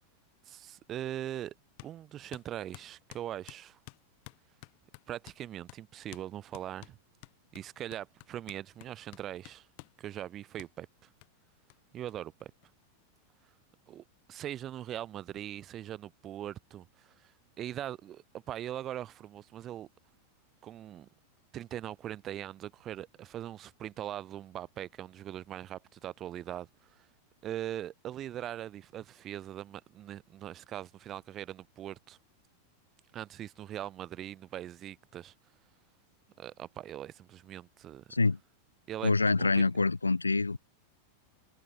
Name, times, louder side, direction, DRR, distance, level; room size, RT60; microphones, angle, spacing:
voice 1, 0.4-1.5 1.8-3.8 5.1-7.0 7.5-9.7 10.0-11.1 11.9-12.5 13.9-17.3 17.6-19.9 20.6-21.1 21.5-27.1 27.4-32.2 33.1-35.3 36.4-38.0 38.9-39.7, right 11 dB, 30° right, 4.8 m, -41 dB
sound 1, 1.8-1.9 2.3-5.4 5.7-5.8 6.1-6.3 6.5-10.0 10.6-10.7 11.2-11.3 11.7-11.8 12.1-12.2 12.4-13.1, left 39 dB, 45° left, 4.2 m, -52 dB
voice 2, 39.0-40.6, left 3 dB, 80° left, 1.8 m, -26 dB
figure-of-eight pair, 90°, 0 cm